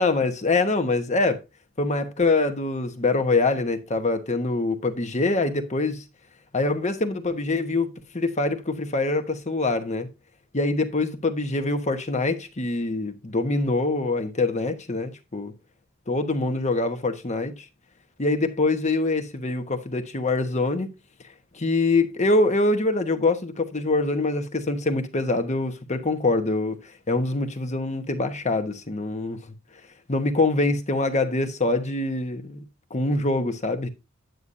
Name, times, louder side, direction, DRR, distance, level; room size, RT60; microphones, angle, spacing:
voice 1, 0.0-1.4 1.8-6.0 6.5-10.1 10.5-15.5 16.1-17.7 18.2-20.9 21.5-29.4 30.1-32.6 32.9-33.9, left 2 dB, 35° left, 1.2 m, -24 dB
9.8 x 9.3 x 2.7 m
head